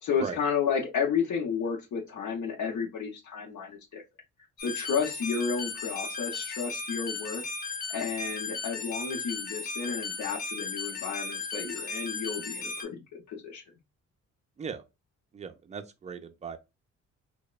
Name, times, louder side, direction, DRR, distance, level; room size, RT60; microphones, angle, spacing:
voice 1, 0.0-4.0 4.6-7.4 7.9-13.6, left 6 dB, 70° left, 0.8 m, -32 dB
sound 1, 4.6-12.8, left 4 dB, 30° left, 0.6 m, -36 dB
voice 2, 15.3-16.6, right 6 dB, 25° right, 0.4 m, -38 dB
2.9 x 2.1 x 2.3 m
cardioid pair, 90°, 30 cm